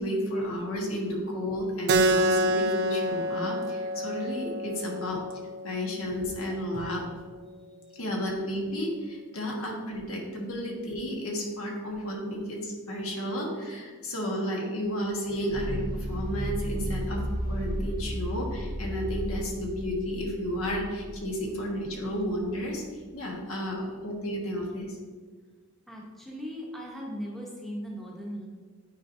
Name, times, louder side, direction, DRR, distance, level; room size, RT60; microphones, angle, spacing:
voice 1, 0.0-5.2 5.6-7.0 7.9-22.8 23.1-25.0, equal, 75° left, -1 dB, 1.4 m, -32 dB
Keyboard (musical), 1.9-7.0, right 1 dB, 50° right, 0.4 m, -28 dB
voice 2, 7.6-8.0 11.9-12.0 12.4-12.5 23.5-23.9 25.9-28.5, equal, ahead, -3 dB, 0.9 m, -40 dB
sound 1, 15.5-22.8, equal, 90° right, 1.5 m, -34 dB
9.2 x 4.5 x 2.7 m, 1.5 s
head